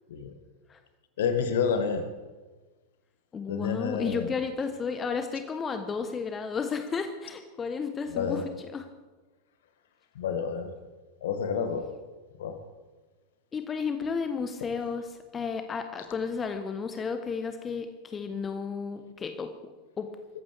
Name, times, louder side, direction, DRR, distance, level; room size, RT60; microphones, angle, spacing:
voice 1, 1.2-2.0 3.5-4.3 8.1-8.4 10.1-10.7 11.2-11.9 12.4-12.5, left 6 dB, 60° left, 7 dB, 1.8 m, -29 dB
voice 2, 3.3-8.9 13.5-20.1, left 5 dB, 20° left, 8 dB, 1.1 m, -33 dB
24.5 x 14.5 x 3.5 m, 1.3 s
figure-of-eight pair, 90°, 0 cm